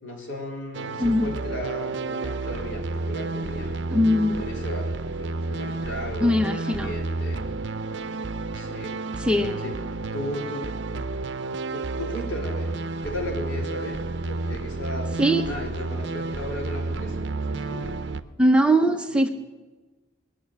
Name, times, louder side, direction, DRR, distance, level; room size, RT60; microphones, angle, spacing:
voice 1, 0.0-3.9 4.4-7.5 8.6-9.0 9.6-9.8 10.1-11.1 11.7-12.7 13.0-15.1 15.4-18.0, equal, 85° left, 0 dB, 3.7 m, -36 dB
sound 1, 0.7-18.2, right 3 dB, 65° right, 0.6 m, -31 dB
voice 2, 1.0-1.3 3.9-4.4 6.2-6.9 9.2-9.6 15.2-15.5 18.4-19.3, equal, 5° right, 5 dB, 0.8 m, -21 dB
21.5 x 7.3 x 8.7 m, 1.2 s
head